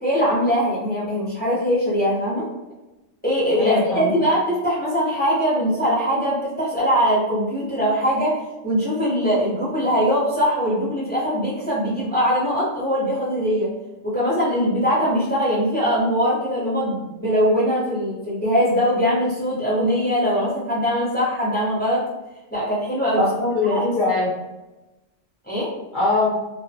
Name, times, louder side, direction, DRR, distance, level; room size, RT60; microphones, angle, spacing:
voice 1, 0.0-2.4 3.2-8.4 8.6-13.7 14.0-22.0 22.5-23.2 23.7-23.8 25.5-25.7, equal, 10° left, -8 dB, 0.8 m, -21 dB
voice 2, 3.6-4.2 23.2-24.3 25.9-26.4, left 3 dB, 50° left, -7 dB, 0.7 m, -21 dB
2.4 x 2.3 x 2.7 m, 1.0 s
omnidirectional pair, 1.3 m